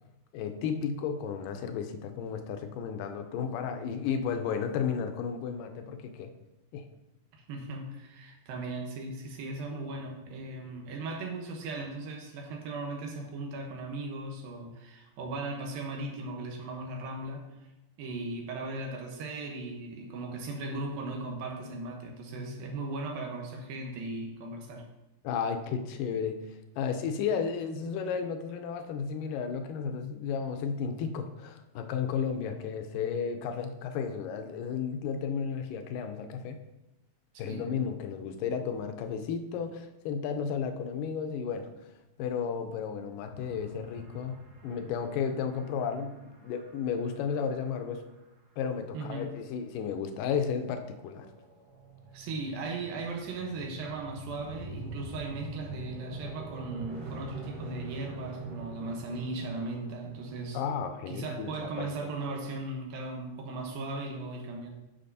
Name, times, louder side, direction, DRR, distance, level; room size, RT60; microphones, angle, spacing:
voice 1, 0.3-6.3 6.7-6.9 25.2-26.4 26.8-36.6 37.4-41.7 42.2-44.4 44.6-48.0 48.6-51.3 60.5-61.9, left 6 dB, 80° left, 7 dB, 2.1 m, -33 dB
voice 2, 7.3-17.5 18.0-24.9 37.3-37.7 48.9-49.3 52.1-60.6 61.1-64.7, right 2 dB, 80° right, 2 dB, 2.8 m, -37 dB
sound 1, 43.2-48.1 50.7-62.2, right 3 dB, 60° right, 3.1 m, -46 dB
9.8 x 6.1 x 2.7 m, 0.96 s
omnidirectional pair, 4.1 m